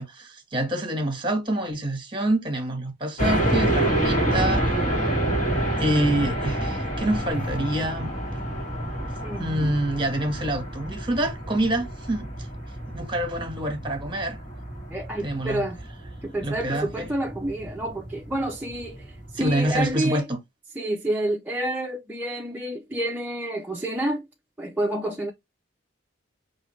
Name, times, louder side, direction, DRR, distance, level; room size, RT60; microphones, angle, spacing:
voice 1, 0.0-5.1 5.8-8.1 9.4-12.3 12.9-14.4 15.2-15.6 16.4-17.1 19.3-20.4, right 1 dB, 25° right, 1.4 m, -27 dB
sound 1, 3.2-19.9, right 1 dB, 40° left, 1.8 m, -28 dB
voice 2, 9.2-9.7 14.9-15.8 16.2-20.3 20.8-24.3 24.6-25.3, right 1 dB, 10° right, 0.5 m, -29 dB
5.4 x 2.8 x 3.1 m
head